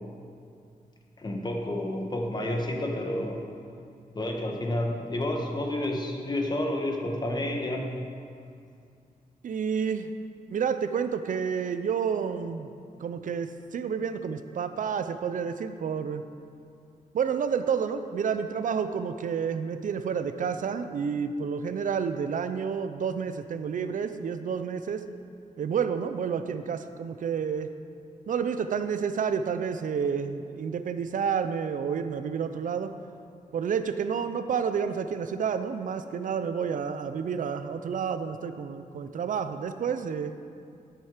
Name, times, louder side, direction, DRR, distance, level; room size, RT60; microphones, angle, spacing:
voice 1, 1.2-3.4 4.1-7.9, left 1 dB, 30° left, 1 dB, 1.4 m, -30 dB
voice 2, 9.4-10.1 10.5-12.7 13.0-16.2 17.1-25.0 25.6-27.7 28.3-33.0 33.5-40.3, right 6 dB, 60° right, 10 dB, 0.5 m, -30 dB
12.0 x 7.4 x 5.0 m, 2.4 s
wide cardioid pair, 125°, 15 cm